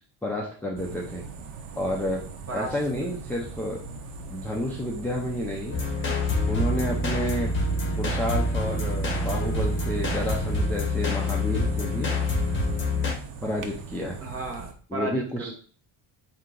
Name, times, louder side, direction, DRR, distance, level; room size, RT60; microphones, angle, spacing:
voice 1, 0.2-1.2 1.8-2.2 2.5-3.8 4.3-5.7 6.5-7.5 8.0-12.1 13.4-14.2 14.9-15.5, left 1 dB, 5° left, -2 dB, 0.4 m, -30 dB
sound 1, 0.8-14.7, right 4 dB, 75° right, 0.9 m, -41 dB
sound 2, 5.7-13.1, left 1 dB, 25° left, 1.5 m, -26 dB
voice 2, 14.2-15.5, right 3 dB, 30° right, 2 dB, 1.1 m, -34 dB
4.4 x 2.8 x 3.8 m, 0.43 s
cardioid pair, 145°, 47 cm